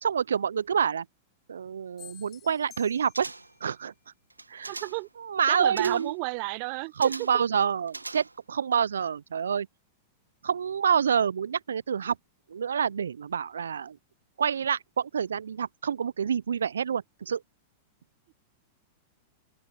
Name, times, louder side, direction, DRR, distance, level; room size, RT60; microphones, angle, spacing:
voice 1, 0.0-1.0 1.5-3.3 3.6-3.9 4.5-4.8 5.2-6.1 7.0-9.7 10.4-12.2 12.5-14.0 14.4-17.4, right 7 dB, 75° right, 0.7 m, -27 dB
sound 1, 2.0-3.6, left 12 dB, 30° left, 4.0 m, -51 dB
sound 2, 3.1-3.7 4.3-5.1 5.8-6.2 7.0-7.5 7.9-8.6 8.9-9.0, right 2 dB, 90° right, 2.0 m, -41 dB
voice 2, 4.7-5.1 5.5-7.1, right 34 dB, 50° right, 1.3 m, -32 dB
open air
figure-of-eight pair, 95°, 0 cm